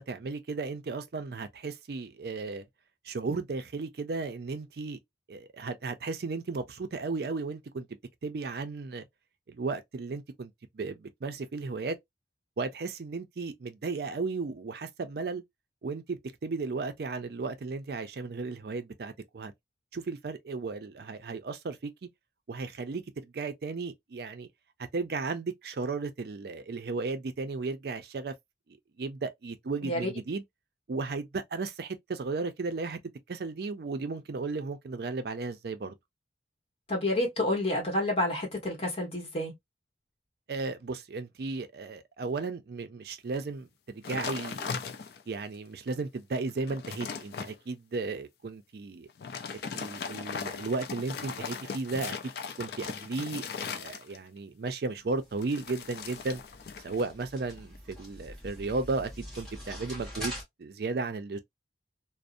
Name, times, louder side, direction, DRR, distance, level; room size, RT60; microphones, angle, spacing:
voice 1, 0.0-2.7 3.0-5.0 5.3-7.9 8.2-9.0 9.5-12.0 12.6-15.4 15.8-19.5 19.9-22.1 22.5-24.5 24.9-28.3 28.7-30.4 30.9-33.0 33.3-36.0 40.5-44.9 45.3-49.1 49.7-52.3 52.6-56.4 56.8-59.1 59.4-61.4, right 3 dB, 55° right, 0.4 m, -35 dB
voice 2, 36.9-39.5, left 1 dB, 30° left, 1.1 m, -29 dB
sound 1, 44.0-45.4 45.9-46.0 46.4-47.6 49.1-54.4 55.4-57.1 57.4-57.8, left 6 dB, 55° left, 0.4 m, -38 dB
sound 2, 55.0-60.4, equal, 5° left, 1.1 m, -44 dB
2.6 x 2.0 x 2.4 m
head